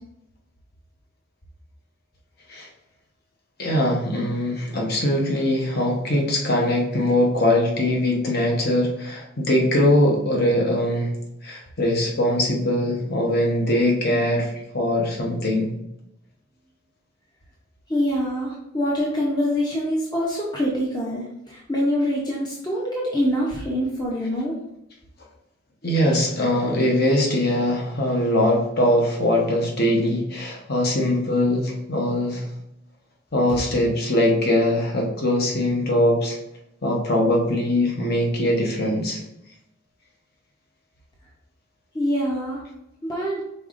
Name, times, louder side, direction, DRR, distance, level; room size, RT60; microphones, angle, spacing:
voice 1, 3.6-11.1 11.4-15.7 25.8-32.5 33.3-36.4 36.8-39.2, left 1 dB, 50° left, 0 dB, 0.9 m, -21 dB
voice 2, 17.9-24.6 41.9-42.6 43.0-43.4, equal, 20° left, -4 dB, 0.7 m, -25 dB
5.3 x 4.0 x 2.5 m, 0.83 s
head